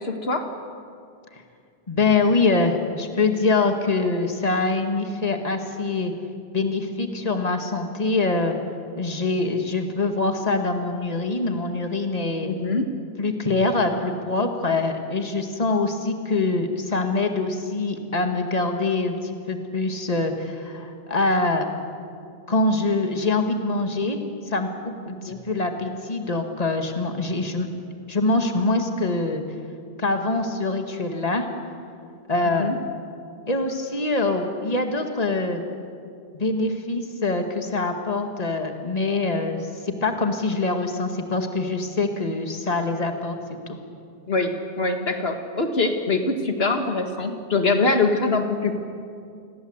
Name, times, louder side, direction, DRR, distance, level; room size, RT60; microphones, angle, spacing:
voice 1, 0.0-0.4 12.4-12.9 25.2-25.4 32.6-32.8 44.3-48.8, left 3 dB, 75° left, 5 dB, 2.0 m, -23 dB
voice 2, 1.9-6.1 6.5-8.5 9.0-12.5 13.2-21.7 22.5-24.2 24.5-27.7 28.1-29.4 30.0-31.5 32.3-32.7 33.5-35.6 36.3-43.4, left 3 dB, 40° left, 5 dB, 2.1 m, -24 dB
29.0 x 21.0 x 8.0 m, 2.4 s
omnidirectional pair, 1.0 m